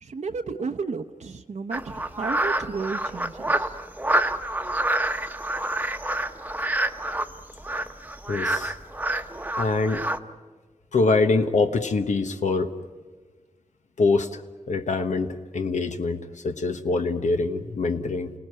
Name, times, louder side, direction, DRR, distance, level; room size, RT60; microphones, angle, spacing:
voice 1, 0.0-3.8, right 4 dB, 75° right, 6 dB, 0.9 m, -33 dB
sound 1, 1.7-10.2, right 1 dB, 15° right, 1.0 m, -27 dB
voice 2, 8.3-8.7 9.6-10.0 10.9-12.7 14.0-14.4 14.7-18.3, left 3 dB, 80° left, 7 dB, 1.2 m, -24 dB
29.0 x 18.5 x 9.5 m, 1.5 s
wide cardioid pair, 115°, 12 cm